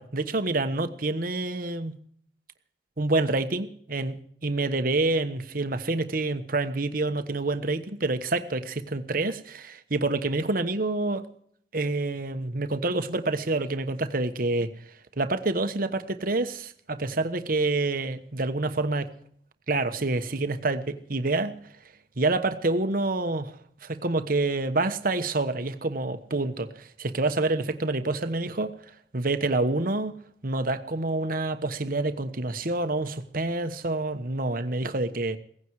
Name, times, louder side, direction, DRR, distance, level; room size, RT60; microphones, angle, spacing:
voice 1, 0.0-2.0 3.0-4.2 4.4-11.2 11.7-14.7 15.2-19.1 19.7-21.6 22.2-23.5 23.8-28.7 29.1-30.2 30.4-35.4, right 2 dB, 50° right, 1.2 m, -27 dB
17.5 x 15.5 x 4.8 m
head